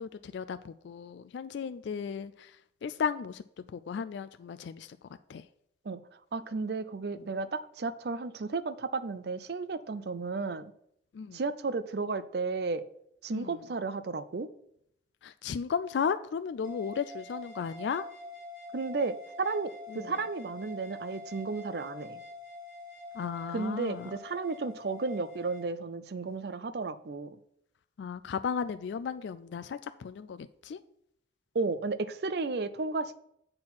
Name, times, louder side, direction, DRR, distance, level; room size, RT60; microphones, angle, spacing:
voice 1, 0.0-2.6 2.8-3.4 3.7-5.0 5.3-5.4 7.1-7.3 11.1-11.4 13.3-13.6 15.2-18.0 19.9-20.1 23.1-24.1 28.0-30.8, left 6 dB, 70° left, 12 dB, 0.3 m, -35 dB
voice 2, 6.3-10.7 11.3-12.8 13.2-14.5 18.7-22.2 23.5-27.4 31.5-33.2, right 4 dB, 55° right, 14 dB, 0.5 m, -33 dB
sound 1, 16.6-25.7, left 2 dB, 20° right, 2.3 m, -46 dB
7.8 x 4.3 x 5.6 m, 0.72 s
head